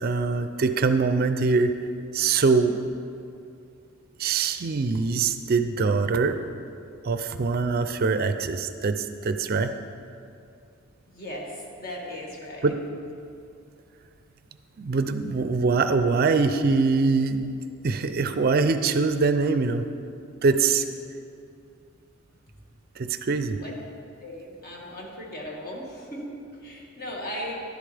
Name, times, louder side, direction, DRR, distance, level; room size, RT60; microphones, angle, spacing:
voice 1, 0.0-1.7 2.1-2.8 4.2-6.4 7.0-9.7 12.6-12.8 14.8-17.5 17.8-19.8 20.4-20.8 23.0-23.6, right 4 dB, 45° right, 9 dB, 0.4 m, -23 dB
voice 2, 11.1-12.8 23.6-23.8 24.2-27.6, equal, 45° left, -3 dB, 1.8 m, -37 dB
11.5 x 11.0 x 3.4 m, 2.5 s
head